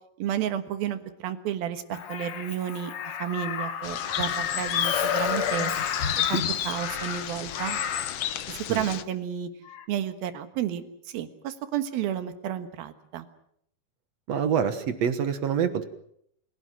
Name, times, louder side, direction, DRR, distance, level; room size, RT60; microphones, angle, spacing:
voice 1, 0.2-2.9 3.2-5.7 6.3-7.8 8.5-9.5 9.9-13.3, right 10 dB, 75° right, 10 dB, 3.2 m, -31 dB
Crow, 1.9-8.3 9.7-9.9, left 8 dB, 55° left, 2.4 m, -31 dB
sound 1, 3.8-9.0, left 11 dB, 90° left, 1.3 m, -32 dB
voice 2, 14.3-15.9, right 7 dB, 60° right, 10 dB, 2.0 m, -26 dB
29.0 x 17.0 x 7.6 m, 0.72 s
omnidirectional pair, 4.3 m